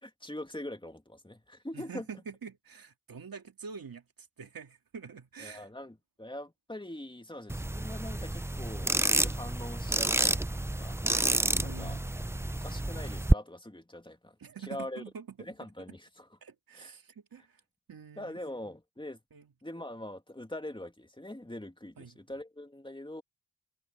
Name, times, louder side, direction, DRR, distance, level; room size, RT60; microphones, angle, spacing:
voice 1, 0.0-2.1 5.4-11.0 11.6-12.0 12.5-14.4 14.7-15.0 15.4-16.3 16.7-17.0 18.2-19.2 19.6-23.2, left 1 dB, 15° left, 2.7 m, -43 dB
voice 2, 1.7-5.7 11.4-12.1 14.4-15.5 16.4-17.6 17.9-18.4 19.3-19.5 22.0-22.2, right 6 dB, 85° right, 2.6 m, -46 dB
sound 1, 7.5-13.3, right 1 dB, 10° right, 0.6 m, -29 dB
cardioid pair, 40°, 34 cm